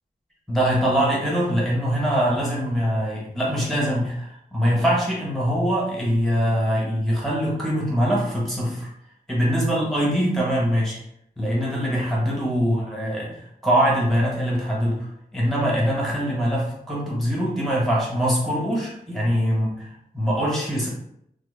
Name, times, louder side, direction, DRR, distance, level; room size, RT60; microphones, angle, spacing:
voice 1, 0.5-8.9 9.3-11.0 11.4-15.1 15.3-20.9, equal, ahead, -6 dB, 1.3 m, -23 dB
3.1 x 2.1 x 3.3 m, 0.76 s
wide cardioid pair, 90°, 17 cm